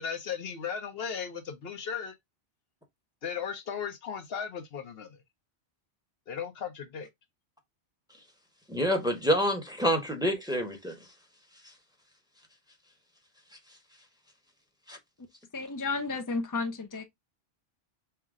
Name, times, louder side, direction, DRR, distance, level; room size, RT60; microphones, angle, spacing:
voice 1, 0.0-2.2 3.2-5.2 6.3-7.1, left 7 dB, 70° left, 1.0 m, -36 dB
voice 2, 8.7-10.9 14.9-15.0, equal, 5° right, 1.0 m, -27 dB
voice 3, 15.5-17.0, left 3 dB, 30° left, 0.4 m, -32 dB
5.6 x 2.1 x 3.5 m
omnidirectional pair, 1.1 m